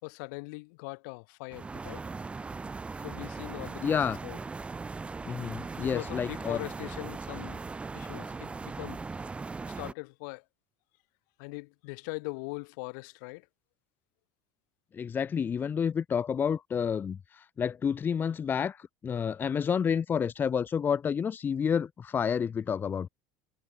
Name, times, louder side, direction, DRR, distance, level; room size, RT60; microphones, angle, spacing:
voice 1, 0.0-2.0 3.0-4.4 5.7-7.6 7.9-9.2 9.6-10.4 11.4-13.5, left 29 dB, 70° left, 5.0 m, -41 dB
sound 1, 1.5-9.9, right 4 dB, 10° right, 3.4 m, -39 dB
voice 2, 3.8-4.2 5.2-6.6 14.9-23.1, left 7 dB, 20° left, 1.3 m, -29 dB
cardioid pair, 170°, 10 cm